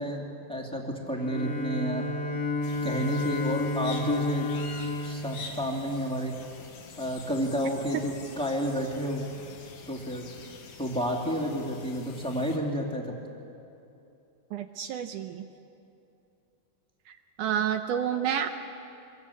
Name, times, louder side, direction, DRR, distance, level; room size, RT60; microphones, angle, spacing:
voice 1, 0.0-2.1 2.8-4.5 5.0-6.3 7.0-9.3 9.9-10.2 10.8-13.0, equal, ahead, 0 dB, 2.0 m, -30 dB
Bowed string instrument, 1.1-6.3, left 2 dB, 30° left, 2.3 m, -32 dB
sound 1, 2.6-12.6, left 4 dB, 80° left, 4.1 m, -46 dB
voice 2, 14.5-15.5 17.1-18.5, right 9 dB, 75° right, 7 dB, 2.0 m, -30 dB
26.0 x 21.5 x 8.5 m, 2.7 s
omnidirectional pair, 4.3 m